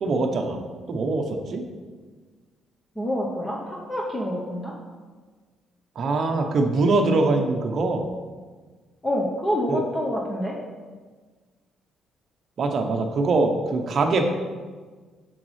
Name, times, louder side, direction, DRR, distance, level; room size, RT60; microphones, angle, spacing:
voice 1, 0.0-0.6 0.9-1.7 6.0-8.1 9.7-9.8 12.6-14.2, right 3 dB, 40° right, 3 dB, 0.7 m, -23 dB
voice 2, 3.0-4.7 9.0-10.6, equal, 10° left, -3 dB, 0.8 m, -27 dB
8.1 x 6.3 x 3.2 m, 1.4 s
cardioid pair, 165°, 0 cm